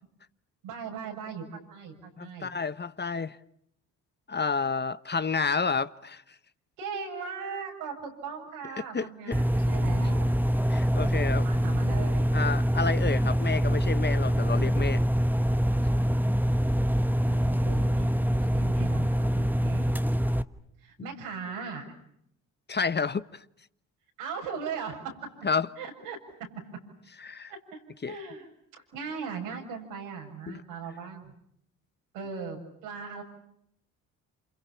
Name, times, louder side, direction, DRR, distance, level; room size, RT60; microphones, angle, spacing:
voice 1, 0.6-2.5 6.8-10.3 11.4-12.3 17.3-20.0 20.8-21.9 24.2-25.2 25.8-26.5 27.5-28.5 28.7-31.3 32.1-33.2, right 5 dB, 85° right, 7.2 m, -39 dB
voice 2, 2.2-3.4 4.3-6.2 8.9-9.4 10.7-11.4 12.3-15.0 22.7-23.4 25.4-25.7 27.2-27.5 28.0-28.2 30.5-30.6, left 5 dB, 30° left, 1.0 m, -30 dB
sound 1, 9.3-20.4, equal, 5° right, 1.2 m, -25 dB
28.5 x 28.5 x 7.1 m
supercardioid pair, 60°, 36 cm